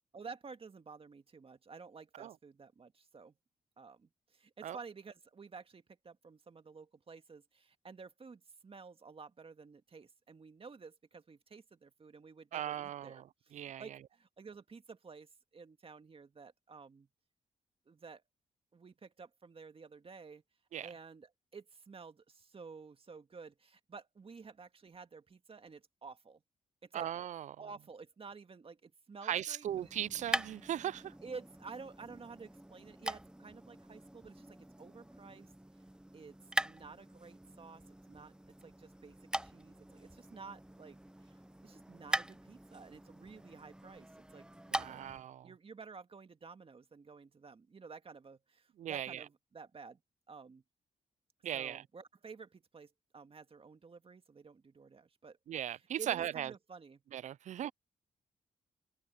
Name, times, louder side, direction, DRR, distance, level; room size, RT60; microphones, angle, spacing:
voice 1, 0.1-3.4 3.8-17.1 17.9-18.2 18.7-20.4 20.8-26.4 26.8-27.1 27.6-29.9 31.2-35.5 36.1-36.4 36.6-37.8 38.1-38.3 38.6-44.5 44.8-45.1 45.4-50.0 50.3-50.6 51.5-55.4 56.0-57.0, right 5 dB, 45° right, 2.0 m, -52 dB
voice 2, 12.5-13.2 13.5-13.8 20.7-20.9 26.9-27.6 29.2-31.1 44.7-45.5 48.8-49.2 51.4-51.8 55.5-56.5 57.1-57.7, right 11 dB, 60° right, 0.4 m, -38 dB
sound 1, 29.6-45.2, right 1 dB, 5° right, 0.7 m, -43 dB
supercardioid pair, 55°, 14 cm